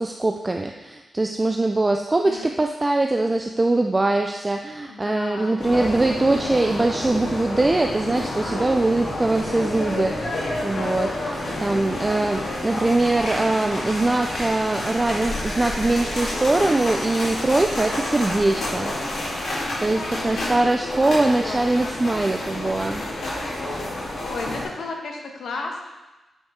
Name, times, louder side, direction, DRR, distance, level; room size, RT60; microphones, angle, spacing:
voice 1, 0.0-19.3 19.8-23.1, right 2 dB, 20° right, 4 dB, 0.4 m, -22 dB
voice 2, 4.9-5.5 10.5-11.7 12.2-12.6 20.1-20.5 21.4-22.0 24.2-25.8, left 3 dB, 85° left, 1 dB, 1.1 m, -35 dB
sound 1, 5.6-24.6, left 1 dB, 70° left, 2.4 m, -29 dB
8.8 x 5.3 x 3.6 m, 1.1 s
wide cardioid pair, 125°, 0 cm